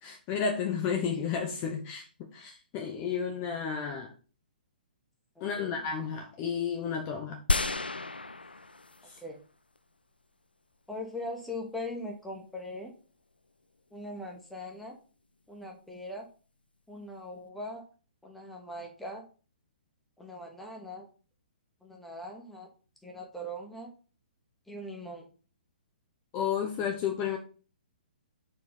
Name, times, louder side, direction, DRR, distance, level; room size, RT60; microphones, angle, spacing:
voice 1, 0.0-4.1 5.4-7.4 9.0-9.2 26.3-27.4, left 7 dB, 25° left, 0.8 m, -32 dB
sound 1, 7.5-9.2 9.8-9.9, left 3 dB, 80° left, 0.4 m, -31 dB
voice 2, 10.9-12.9 13.9-15.0 15.5-16.3 16.9-17.8 18.2-19.3 20.2-21.1 21.8-22.7 23.0-23.9 24.7-25.3, left 1 dB, ahead, 1.3 m, -40 dB
4.5 x 4.4 x 5.7 m
figure-of-eight pair, 125°, 5 cm